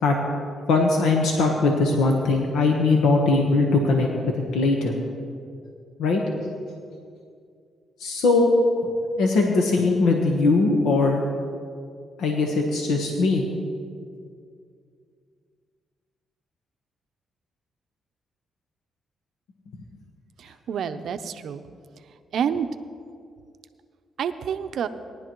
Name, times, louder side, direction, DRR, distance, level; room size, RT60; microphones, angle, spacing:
voice 1, 0.7-4.1 4.5-5.0 6.0-6.2 8.0-8.5 9.2-11.2 12.2-13.4, left 3 dB, 85° left, 1 dB, 1.1 m, -20 dB
voice 2, 20.4-21.6 22.3-22.7 24.2-24.9, right 8 dB, 70° right, 9 dB, 0.6 m, -28 dB
18.5 x 11.0 x 3.0 m, 2.3 s
cardioid pair, 80°, 0 cm